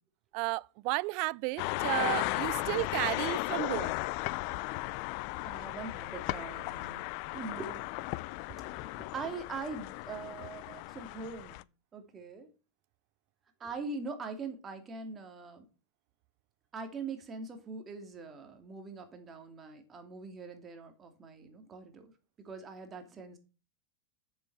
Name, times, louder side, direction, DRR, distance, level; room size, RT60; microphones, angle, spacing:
voice 1, 0.3-3.9 10.7-10.8, right 24 dB, 55° right, 0.3 m, -33 dB
sound 1, 1.6-11.6, left 21 dB, 55° left, 0.4 m, -36 dB
voice 2, 5.4-7.1 7.3-7.9 8.5-11.6 11.9-12.5 13.6-15.7 16.7-22.1 22.4-23.4, right 4 dB, 25° right, 2.6 m, -42 dB
7.7 x 7.2 x 4.7 m
hypercardioid pair, 115°, 0 cm